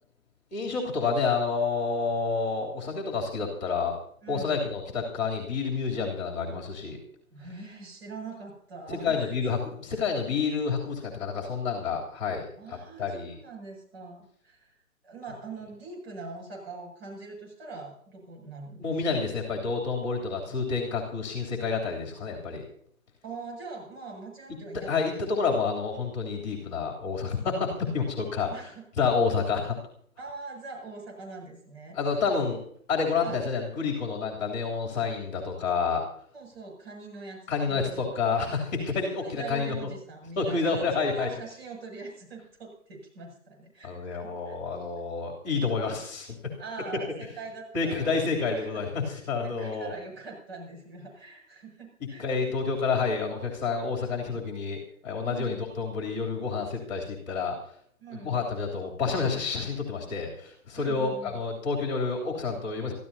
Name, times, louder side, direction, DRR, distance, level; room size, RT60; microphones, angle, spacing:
voice 1, 0.5-4.0 4.3-7.0 8.9-13.3 18.8-22.6 24.9-28.5 29.0-29.8 31.9-32.6 32.9-36.0 37.5-39.8 40.4-41.3 43.8-46.3 47.7-49.9 52.2-54.8 55.0-57.6 58.2-62.9, left 4 dB, 30° left, -1 dB, 3.3 m, -29 dB
voice 2, 4.2-4.7 7.3-9.3 12.6-14.8 15.0-18.9 23.2-25.0 28.5-28.8 30.2-32.0 33.2-33.4 36.3-38.4 39.2-44.5 46.6-48.3 48.6-52.5 55.2-55.6 58.0-58.4 60.8-61.4, right 3 dB, 45° right, -1 dB, 7.4 m, -43 dB
25.0 x 14.5 x 2.8 m, 0.62 s
figure-of-eight pair, 145°, 42 cm